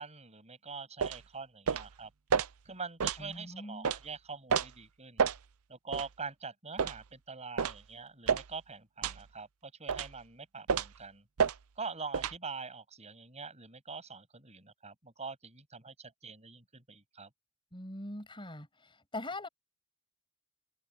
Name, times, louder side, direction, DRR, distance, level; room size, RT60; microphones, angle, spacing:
voice 1, 0.0-2.1 2.6-5.2 5.7-11.2 11.8-17.3, right 4 dB, 30° right, 7.7 m, -44 dB
sound 1, 1.0-1.2 1.7-1.9 2.3-2.5 3.0-3.2 3.8-4.0 4.5-4.7 5.2-5.4 5.9-6.1 6.8-7.0 7.6-7.8 8.3-8.5 9.0-9.2 9.9-10.1 10.7-11.0 11.4-11.6 12.1-12.4, right 6 dB, 75° right, 0.7 m, -29 dB
voice 2, 3.2-3.9 17.7-19.5, left 2 dB, 20° left, 6.9 m, -42 dB
head